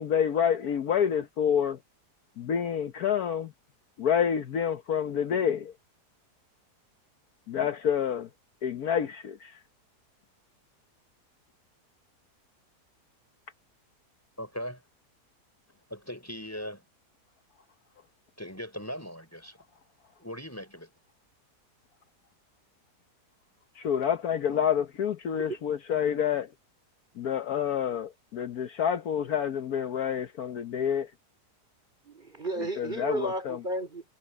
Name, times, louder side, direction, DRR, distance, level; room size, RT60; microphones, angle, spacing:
voice 1, 0.0-1.8 2.4-3.5 4.0-5.7 7.5-8.3 8.6-9.6 23.8-26.5 27.2-31.1 32.8-33.6, left 8 dB, 65° left, 1.4 m, -28 dB
voice 2, 14.4-14.8 15.9-16.8 18.4-19.6 20.2-20.9, equal, 10° left, 5.6 m, -39 dB
voice 3, 32.0-34.0, right 1 dB, 30° right, 4.6 m, -33 dB
omnidirectional pair, 1.8 m